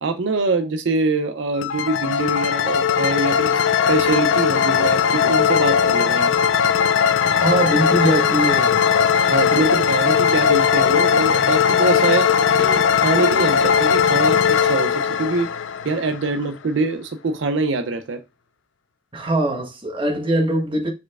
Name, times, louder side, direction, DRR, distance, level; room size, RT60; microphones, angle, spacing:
voice 1, 0.0-6.3 9.3-12.3 12.5-15.5 15.8-18.2, right 3 dB, 75° right, 0.5 m, -24 dB
sound 1, 1.6-16.4, left 7 dB, 85° left, 0.4 m, -18 dB
voice 2, 7.2-8.8 19.1-20.9, right 1 dB, 25° right, 1.3 m, -21 dB
4.6 x 4.3 x 2.3 m
head